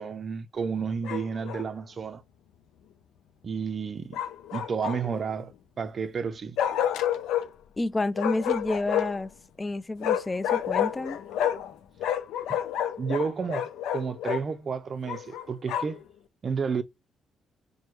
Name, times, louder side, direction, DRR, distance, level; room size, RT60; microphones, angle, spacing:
voice 1, 0.0-2.2 3.4-4.2 4.5-6.6 12.5-12.6 13.0-16.0 16.4-16.8, right 5 dB, 45° right, 0.4 m, -31 dB
Bark, 1.0-1.7 4.1-5.2 6.6-7.5 8.2-9.3 10.0-11.7 12.0-14.4 15.1-16.0, left 10 dB, 90° left, 0.4 m, -29 dB
voice 2, 7.8-9.3 9.6-11.2, left 2 dB, 20° left, 0.4 m, -29 dB
4.4 x 2.1 x 3.2 m
cardioid pair, 90°, 0 cm